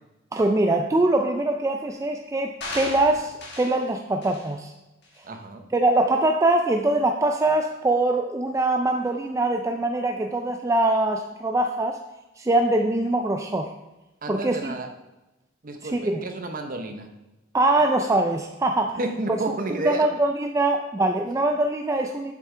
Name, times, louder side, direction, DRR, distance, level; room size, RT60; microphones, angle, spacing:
voice 1, 0.3-4.7 5.7-12.0 12.4-13.7 14.3-14.7 15.8-16.2 17.5-19.0 19.3-19.4 19.8-22.3, right 2 dB, 15° right, 4 dB, 0.3 m, -23 dB
sound 1, 2.6-3.8 4.2-4.5 5.0-5.2, left 2 dB, 60° left, 2.0 m, -36 dB
voice 2, 5.2-5.6 14.2-14.9 15.6-17.1 18.9-20.0, right 2 dB, 45° right, 6 dB, 0.8 m, -31 dB
7.4 x 7.4 x 3.3 m, 1.0 s
head